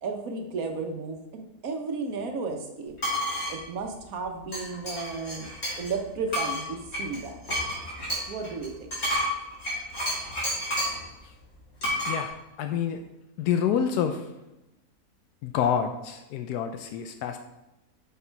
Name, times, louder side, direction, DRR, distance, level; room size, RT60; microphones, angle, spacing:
voice 1, 0.0-2.9 3.5-5.5 5.8-7.4 8.3-9.0, right 4 dB, 65° right, 4 dB, 1.3 m, -33 dB
sound 1, 3.0-3.5 4.5-5.9 6.3-11.0 11.8-12.2, equal, 45° left, 2.8 m, -30 dB
voice 2, 12.1-13.0 13.4-14.3 15.4-17.4, left 8 dB, 85° left, 7 dB, 1.1 m, -28 dB
6.7 x 4.8 x 4.5 m, 0.95 s
omnidirectional pair, 1.6 m